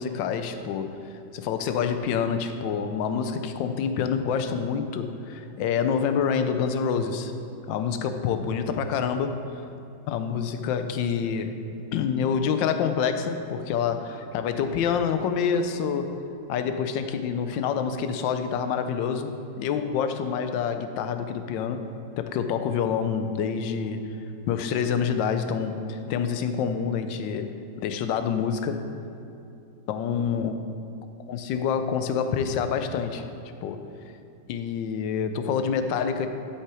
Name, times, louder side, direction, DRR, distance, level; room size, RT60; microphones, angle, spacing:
voice 1, 0.0-7.3 7.7-9.4 10.1-11.6 11.9-16.2 16.5-21.8 22.1-24.0 24.5-27.5 27.8-28.8 29.9-30.6 31.3-33.3 33.6-33.8 34.5-36.3, left 7 dB, 90° left, 8 dB, 1.3 m, -27 dB
12.0 x 5.7 x 4.8 m, 2.8 s
omnidirectional pair, 1.9 m